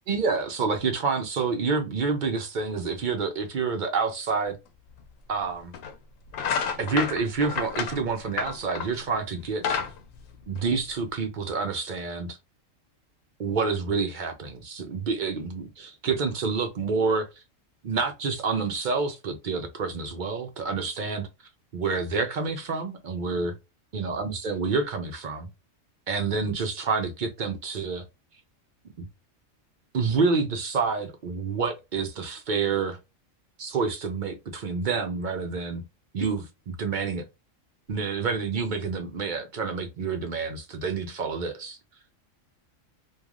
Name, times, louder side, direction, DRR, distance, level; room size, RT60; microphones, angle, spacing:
voice 1, 0.1-4.6 5.3-5.7 6.8-9.8 10.5-12.3 13.4-17.3 17.8-21.3 21.7-23.5 23.9-25.5 26.1-28.0 29.9-33.0 33.6-35.8 36.1-37.2 37.9-41.8, right 4 dB, 60° right, 0.5 m, -28 dB
sound 1, 5.0-5.1 5.7-5.9 6.3-9.0 9.4-11.1, left 6 dB, 85° left, 1.0 m, -30 dB
3.1 x 2.3 x 2.3 m
omnidirectional pair, 1.4 m